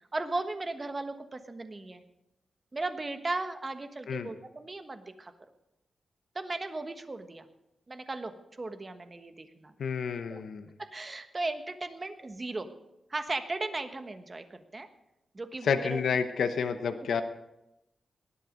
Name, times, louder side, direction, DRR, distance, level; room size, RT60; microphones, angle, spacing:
voice 1, 0.1-2.0 2.7-5.3 6.3-7.5 7.9-9.7 10.3-10.4 10.8-12.7 13.1-14.9 15.3-16.0, right 2 dB, 30° right, 8 dB, 1.3 m, -36 dB
voice 2, 9.8-10.7 15.6-17.2, left 6 dB, 85° left, 8 dB, 1.0 m, -29 dB
18.5 x 11.5 x 5.2 m, 0.90 s
wide cardioid pair, 100°, 0 cm